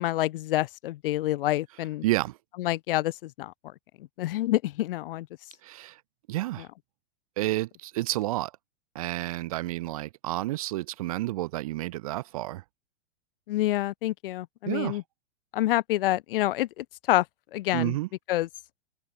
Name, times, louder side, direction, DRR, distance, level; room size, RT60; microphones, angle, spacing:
voice 1, 0.0-2.0 2.6-3.5 4.2-5.3 13.5-15.0 15.5-17.2 17.5-18.0 18.3-18.5, left 15 dB, 50° left, 0.7 m, -27 dB
voice 2, 2.0-2.4 5.6-6.0 6.3-6.7 7.4-8.5 8.9-12.6 14.7-15.0 17.7-18.1, right 17 dB, 30° right, 0.4 m, -30 dB
supercardioid pair, 160°, 35 cm